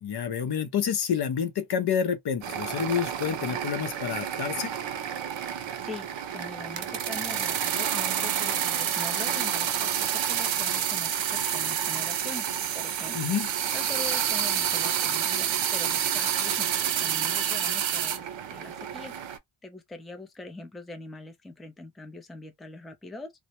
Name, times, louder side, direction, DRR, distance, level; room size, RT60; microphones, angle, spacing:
voice 1, 0.0-4.7 13.1-13.5, left 7 dB, 55° left, 0.6 m, -28 dB
sound 1, 2.4-19.4, right 9 dB, 70° right, 0.6 m, -29 dB
voice 2, 5.5-6.1 6.3-12.5 12.7-13.3 13.7-18.3 18.5-19.2 19.6-23.3, left 2 dB, ahead, 0.4 m, -42 dB
2.1 x 2.1 x 2.8 m
cardioid pair, 95°, 47 cm